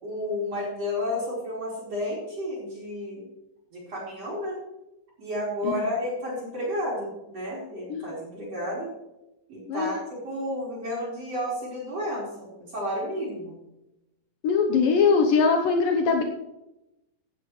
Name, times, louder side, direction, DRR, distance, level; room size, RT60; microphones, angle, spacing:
voice 1, 0.0-3.2 3.7-4.6 5.2-8.9 9.5-10.0 10.2-13.5, left 1 dB, 45° right, -5 dB, 5.3 m, -31 dB
voice 2, 14.4-16.2, left 5 dB, 75° left, 3 dB, 2.7 m, -21 dB
16.5 x 11.5 x 3.2 m, 0.91 s
omnidirectional pair, 4.1 m